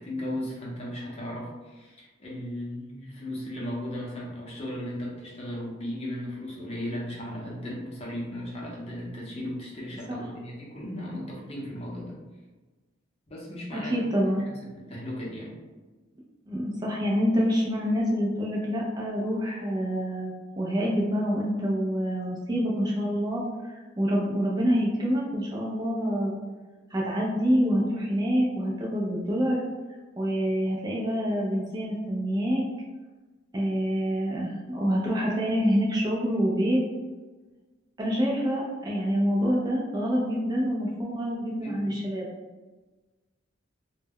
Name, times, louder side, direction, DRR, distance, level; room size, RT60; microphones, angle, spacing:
voice 1, 0.0-12.2 13.3-14.5 14.9-15.6 41.6-41.9, left 1 dB, 30° left, -4 dB, 0.7 m, -36 dB
voice 2, 13.7-14.4 16.5-26.4 26.9-29.6 30.2-32.6 33.5-36.8 38.0-42.3, equal, 20° right, -3 dB, 0.4 m, -26 dB
2.2 x 2.0 x 3.5 m, 1.2 s
head